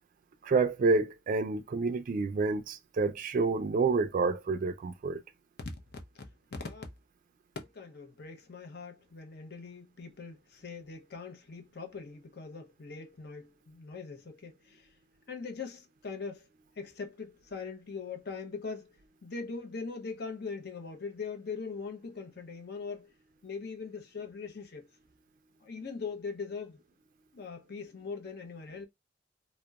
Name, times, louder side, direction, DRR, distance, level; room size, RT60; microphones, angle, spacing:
voice 1, 0.4-5.2, right 4 dB, 45° right, 0.3 m, -28 dB
voice 2, 6.2-6.8 7.6-14.9 15.3-16.5 16.8-18.9 19.2-23.1 23.4-24.9 25.6-26.8 27.3-28.9, left 4 dB, 60° left, 0.6 m, -41 dB
2.8 x 2.0 x 2.3 m
head